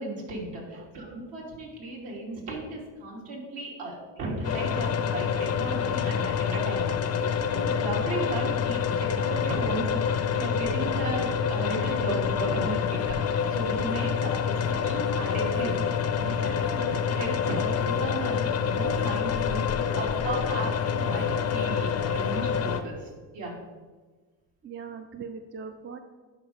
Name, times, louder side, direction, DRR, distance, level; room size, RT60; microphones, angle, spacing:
voice 1, 0.0-13.2 13.5-23.1 23.3-23.5, right 2 dB, 65° right, -3 dB, 2.5 m, -35 dB
sound 1, 4.4-22.8, left 7 dB, 35° left, 0.5 m, -27 dB
sound 2, 12.5-22.8, right 4 dB, 40° right, 2.2 m, -44 dB
voice 2, 24.6-26.0, right 5 dB, 25° right, 7 dB, 0.4 m, -40 dB
10.5 x 4.7 x 3.4 m, 1.4 s
supercardioid pair, 90°, 48 cm